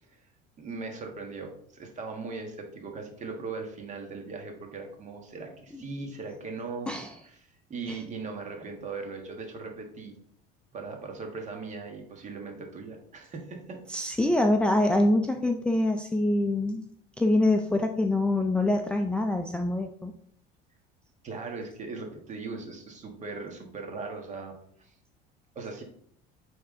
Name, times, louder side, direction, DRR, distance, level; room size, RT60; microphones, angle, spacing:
voice 1, 0.6-6.9 7.2-10.1 10.7-13.8 21.2-24.5 24.8-24.9 25.5-25.8, right 4 dB, 35° right, 2 dB, 1.6 m, -39 dB
voice 2, 13.9-16.8 17.2-20.1, left 1 dB, 5° left, 3 dB, 0.4 m, -25 dB
8.7 x 3.5 x 3.7 m, 0.66 s
cardioid pair, 120°, 20 cm